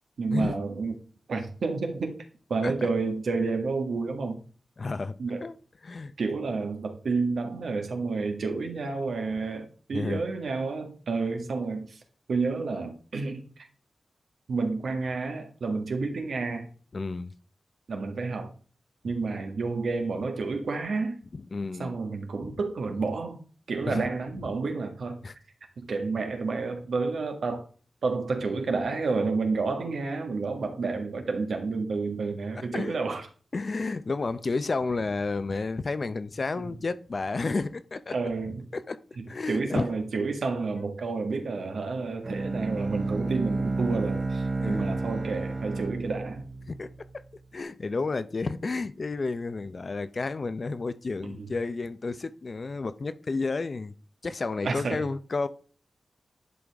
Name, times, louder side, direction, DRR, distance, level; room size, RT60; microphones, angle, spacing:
voice 1, 0.2-0.9 1.3-4.4 5.2-5.4 6.2-12.0 12.3-13.7 14.5-16.7 17.9-18.5 19.0-21.2 21.8-23.4 23.7-25.2 25.8-27.6 28.0-33.3 38.1-38.6 39.2-46.5 51.2-51.5 54.6-55.0, right 4 dB, 80° right, 1.7 m, -30 dB
voice 2, 4.8-5.5 5.8-6.1 9.9-10.2 16.9-17.3 21.3-21.9 23.8-24.1 25.2-25.3 32.6-33.0 33.5-38.2 38.7-39.0 39.3-39.8 40.8-40.9 44.6-45.0 46.7-47.1 47.5-53.9 54.2-55.5, left 3 dB, 45° left, 0.6 m, -31 dB
Bowed string instrument, 42.2-47.2, right 3 dB, 40° right, 2.6 m, -31 dB
11.0 x 5.0 x 3.5 m
wide cardioid pair, 130°, 0 cm